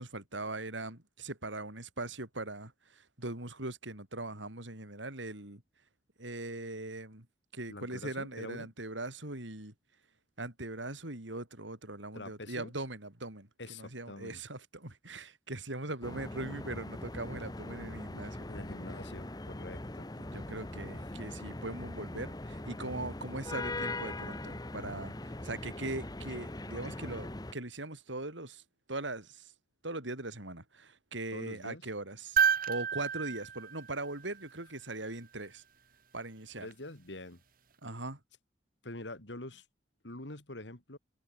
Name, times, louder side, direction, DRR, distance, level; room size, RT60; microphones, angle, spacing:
voice 1, 0.0-5.6 6.2-7.3 7.5-9.7 10.4-18.4 20.2-28.6 28.9-29.5 29.8-35.6 36.1-36.7 37.8-38.2, right 2 dB, 90° right, 5.4 m, -40 dB
voice 2, 7.7-8.7 12.1-12.7 13.6-14.4 18.5-20.1 31.3-31.9 36.6-37.4 38.8-39.6 40.0-41.0, left 2 dB, 75° left, 3.2 m, -45 dB
sound 1, 16.0-27.5, left 2 dB, 20° left, 1.1 m, -41 dB
sound 2, 32.4-34.7 36.7-36.8, right 7 dB, 50° right, 2.1 m, -31 dB
head